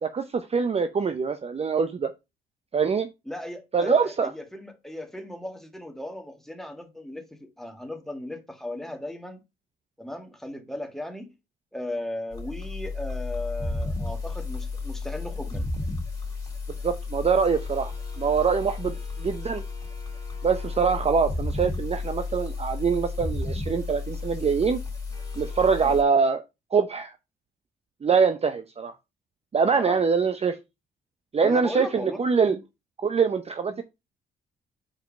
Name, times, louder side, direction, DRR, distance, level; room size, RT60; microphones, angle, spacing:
voice 1, 0.0-2.1 2.7-3.1 3.7-4.3 16.8-17.9 18.2-19.6 20.4-24.8 25.4-26.4 26.7-27.1 28.0-28.9 29.5-30.6 31.3-32.6 33.0-33.8, right 5 dB, 30° right, 0.6 m, -24 dB
voice 2, 3.2-9.4 10.0-11.3 11.7-15.7 25.8-25.9 29.8-30.0 31.4-32.2 32.5-32.6 33.7-33.8, left 1 dB, ahead, 1.7 m, -36 dB
sound 1, 12.3-26.0, left 3 dB, 20° left, 3.2 m, -33 dB
5.2 x 4.5 x 5.1 m
cardioid pair, 90°, 20 cm